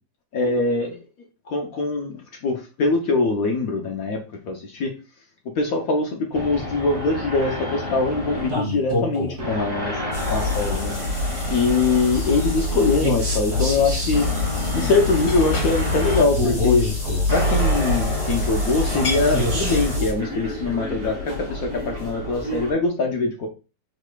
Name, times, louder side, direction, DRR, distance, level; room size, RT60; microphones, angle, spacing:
voice 1, 0.3-1.0 1.5-4.9 5.6-10.9 11.5-14.3 14.7-16.9 17.3-23.5, left 3 dB, 65° left, 2 dB, 0.9 m, -23 dB
sound 1, 6.3-22.7, equal, 45° right, 2.1 m, -28 dB
sound 2, 10.1-20.1, left 2 dB, 45° left, 2.6 m, -25 dB
5.0 x 4.1 x 2.2 m, 0.32 s
omnidirectional pair, 2.1 m